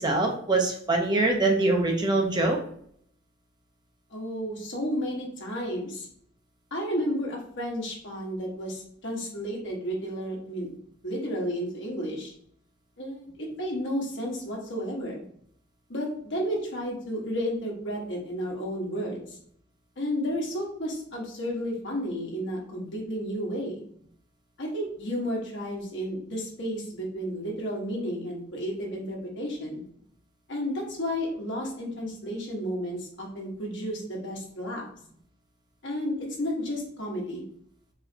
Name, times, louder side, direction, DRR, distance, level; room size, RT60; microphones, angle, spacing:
voice 1, 0.0-2.6, right 2 dB, 20° right, 1 dB, 0.6 m, -23 dB
voice 2, 4.1-6.1 6.7-10.7 11.0-12.3 13.0-15.2 15.9-19.4 20.0-23.8 24.6-29.8 30.5-34.9 35.8-37.4, equal, 60° left, -2 dB, 1.2 m, -32 dB
4.1 x 3.1 x 2.7 m, 0.65 s
head